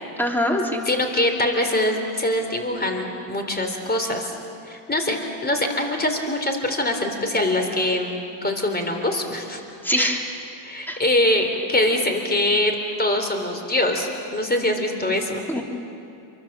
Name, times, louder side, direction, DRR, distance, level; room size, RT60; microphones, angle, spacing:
voice 1, 0.2-0.9 9.8-10.2 10.9-11.0 15.5-15.6, equal, 5° left, 1 dB, 3.2 m, -23 dB
voice 2, 0.9-4.3 4.7-9.6 10.0-10.2 10.6-15.4, left 1 dB, 20° left, 5 dB, 3.7 m, -23 dB
28.5 x 24.0 x 7.5 m, 2.7 s
cardioid pair, 95°, 49 cm